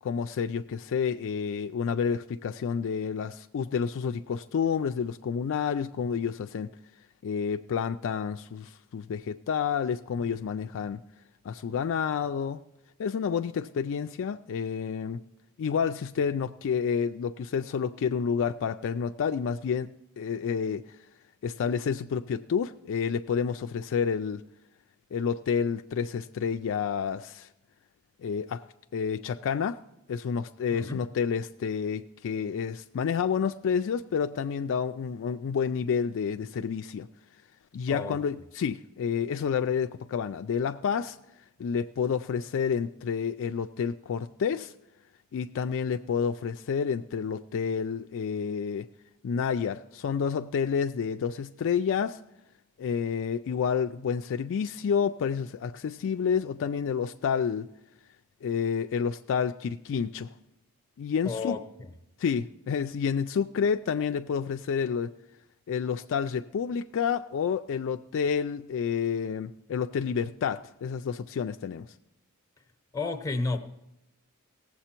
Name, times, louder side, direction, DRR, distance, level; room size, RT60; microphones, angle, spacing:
voice 1, 0.0-6.7 7.2-11.0 11.4-12.6 13.0-15.2 15.6-20.8 21.4-24.4 25.1-27.5 28.2-28.6 28.9-29.8 30.1-37.1 37.7-41.2 41.6-44.7 45.3-48.9 49.2-52.2 52.8-57.7 58.4-60.3 61.0-61.6 62.2-65.1 65.7-71.9, left 6 dB, 60° left, 8 dB, 0.3 m, -29 dB
voice 2, 30.7-31.0 37.9-38.2 61.2-61.9 72.9-73.6, left 3 dB, 15° left, 7 dB, 0.9 m, -32 dB
17.5 x 7.5 x 4.4 m, 0.89 s
head